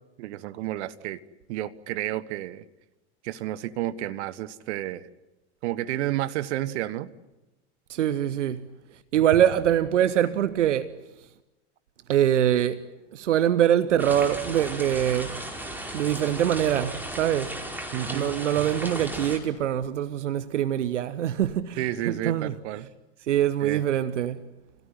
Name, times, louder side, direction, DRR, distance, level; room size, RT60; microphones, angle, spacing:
voice 1, 0.2-1.2 1.5-2.6 3.2-5.1 5.6-7.1 17.9-18.3 21.8-22.9 23.6-23.8, right 14 dB, 70° right, 1.2 m, -31 dB
voice 2, 7.9-8.7 9.1-10.9 12.1-12.8 13.1-15.4 15.9-17.6 18.1-22.5 23.3-24.4, right 10 dB, 85° right, 1.0 m, -24 dB
sound 1, 14.0-19.4, right 1 dB, 5° right, 5.0 m, -35 dB
27.0 x 17.5 x 9.9 m
hypercardioid pair, 95°, 36 cm